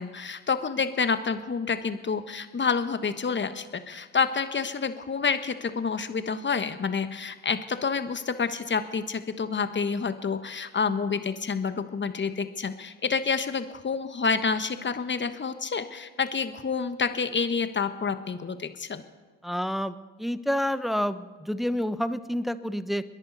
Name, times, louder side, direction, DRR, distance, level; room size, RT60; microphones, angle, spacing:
voice 1, 0.0-19.0, left 5 dB, 30° left, 10 dB, 1.3 m, -28 dB
voice 2, 19.4-23.0, equal, ahead, 13 dB, 0.8 m, -29 dB
29.0 x 10.5 x 4.1 m, 1.3 s
hypercardioid pair, 60°, 38 cm